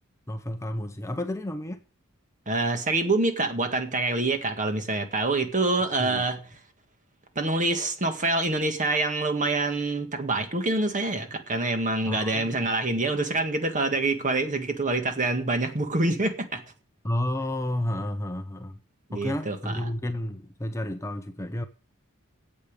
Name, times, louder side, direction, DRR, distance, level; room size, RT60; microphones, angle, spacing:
voice 1, 0.3-1.8 6.0-6.2 12.1-12.6 17.0-18.8 19.1-21.6, left 1 dB, 15° left, 0.7 m, -31 dB
voice 2, 2.5-6.5 7.4-16.6 19.1-19.8, right 2 dB, 35° right, 1.8 m, -26 dB
8.6 x 8.2 x 8.8 m
head